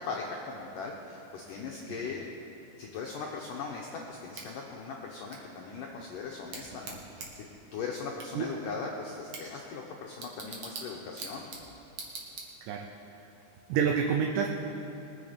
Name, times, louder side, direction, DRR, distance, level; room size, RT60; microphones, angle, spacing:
voice 1, 0.0-2.3 2.8-7.5 7.7-11.5, left 4 dB, 85° left, -1 dB, 1.9 m, -39 dB
Bicycle / Tick, 4.3-12.9, right 3 dB, 55° right, 2.4 m, -46 dB
voice 2, 13.7-14.5, right 7 dB, 85° right, 2 dB, 3.0 m, -28 dB
21.0 x 8.3 x 5.1 m, 2.9 s
omnidirectional pair, 5.1 m